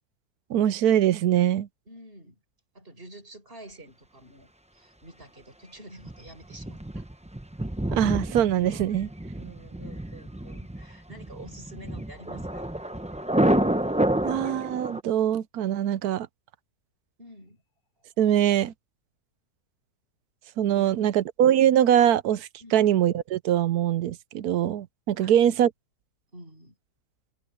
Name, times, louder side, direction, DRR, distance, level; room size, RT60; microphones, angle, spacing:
voice 1, 0.5-1.7 7.9-9.1 14.2-16.3 18.2-18.7 20.6-25.7, right 10 dB, 70° right, 1.1 m, -23 dB
voice 2, 1.9-2.4 2.7-7.1 7.6-7.7 9.4-12.7 13.4-13.6 17.2-17.6 20.7-21.1 22.6-22.8 25.2-25.6 26.3-26.8, right 1 dB, 35° right, 6.2 m, -48 dB
Thunder, 6.0-15.0, right 1 dB, 10° right, 0.4 m, -29 dB
omnidirectional pair, 1.8 m